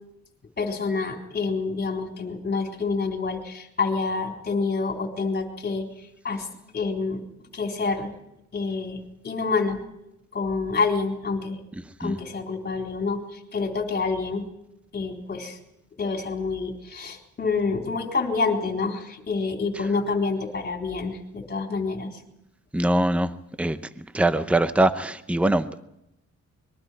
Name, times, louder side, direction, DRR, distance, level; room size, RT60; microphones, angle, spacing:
voice 1, 0.6-5.9 6.2-6.5 6.7-7.2 7.5-8.1 8.5-9.8 10.3-11.6 12.0-14.5 14.9-15.6 16.0-22.2, left 4 dB, 35° left, 2 dB, 4.1 m, -27 dB
voice 2, 22.7-23.3 23.6-25.8, right 1 dB, 5° right, 12 dB, 0.7 m, -23 dB
26.0 x 22.0 x 4.6 m, 0.84 s
wide cardioid pair, 140°, 29 cm